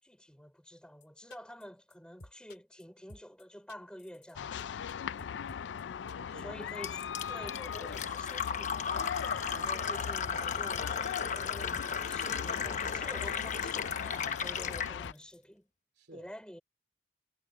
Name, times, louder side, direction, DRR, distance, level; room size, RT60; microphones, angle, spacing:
voice 1, 0.0-4.7 6.3-10.9 11.3-15.7 16.1-16.6, equal, 5° left, 4.8 m, -49 dB
sound 1, 1.0-1.1 1.3-1.6 1.9-2.0 2.2-2.8 3.1-3.4 3.7-4.3 4.6-4.7 4.9-5.8 6.1-6.4 6.7-6.8 7.0-7.1 7.3-7.6 7.9-8.2 8.5-9.1 9.4-10.0 10.3-10.6 10.9-11.2 11.5-11.6 11.8-12.4 12.6-13.0 13.2-13.9 14.1-14.2 14.4-15.4, left 1 dB, 60° left, 3.3 m, -52 dB
sound 2, 4.4-15.1, left 7 dB, 80° left, 0.3 m, -39 dB
voice 2, 5.1-6.6 7.3-7.5 9.5-9.8 14.5-14.6 16.0-16.3, right 1 dB, 65° right, 3.2 m, -55 dB
Fill (with liquid), 6.8-14.9, left 6 dB, 40° left, 0.9 m, -35 dB
head